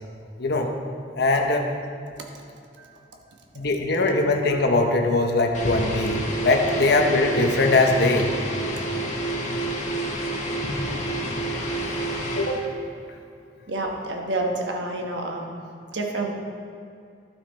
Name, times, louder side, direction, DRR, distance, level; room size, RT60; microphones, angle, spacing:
voice 1, 0.4-0.7 1.1-1.7 3.5-8.3 11.9-12.0 12.4-12.7, left 2 dB, 60° left, 3 dB, 0.8 m, -21 dB
sound 1, 5.5-12.6, right 1 dB, 40° left, 1.1 m, -28 dB
voice 2, 13.7-15.5 15.9-16.3, right 2 dB, 75° right, 1 dB, 1.2 m, -28 dB
12.0 x 6.0 x 4.3 m, 2.5 s
head